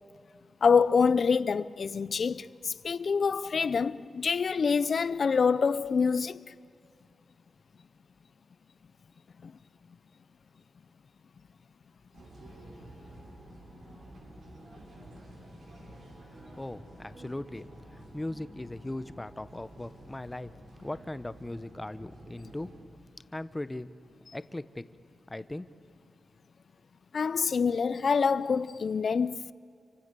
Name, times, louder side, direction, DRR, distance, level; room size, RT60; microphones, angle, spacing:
voice 1, 0.6-6.5 9.4-9.5 27.1-29.5, left 5 dB, 50° left, 0.6 m, -26 dB
sound 1, 12.1-22.8, right 1 dB, 65° right, 5.5 m, -50 dB
voice 2, 16.3-20.5 20.8-22.7 23.3-23.9 24.3-24.9 25.3-25.7, left 1 dB, 10° left, 0.8 m, -39 dB
29.5 x 24.5 x 6.9 m
wide cardioid pair, 155°, 0 cm